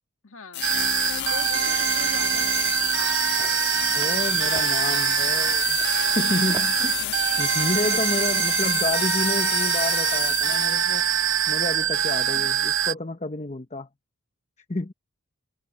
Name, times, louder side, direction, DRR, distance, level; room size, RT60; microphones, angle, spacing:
voice 1, 0.2-0.7 1.1-3.3 6.8-7.1 7.5-8.1 12.3-12.5, left 4 dB, 65° left, 1.8 m, -43 dB
sound 1, 0.5-11.1, left 11 dB, 50° left, 1.5 m, -30 dB
sound 2, 0.6-12.9, right 9 dB, 55° right, 1.0 m, -24 dB
sound 3, 3.3-8.7, right 2 dB, 20° right, 3.5 m, -44 dB
voice 2, 3.9-5.8 6.1-6.9 7.4-11.1 11.5-13.9 14.7-14.9, left 2 dB, 30° left, 0.9 m, -30 dB
head